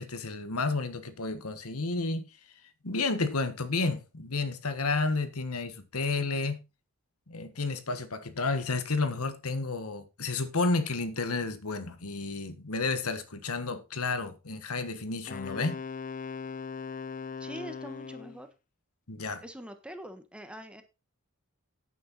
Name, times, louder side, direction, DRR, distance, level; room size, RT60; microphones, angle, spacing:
voice 1, 0.0-2.3 2.8-6.6 7.3-15.8 19.1-19.4, left 3 dB, 85° left, 1.5 m, -31 dB
Wind instrument woodwind instrument, 15.3-18.4, left 5 dB, 40° left, 0.5 m, -39 dB
voice 2, 17.4-18.5 19.4-20.8, equal, 5° right, 1.4 m, -43 dB
9.6 x 9.0 x 4.1 m
head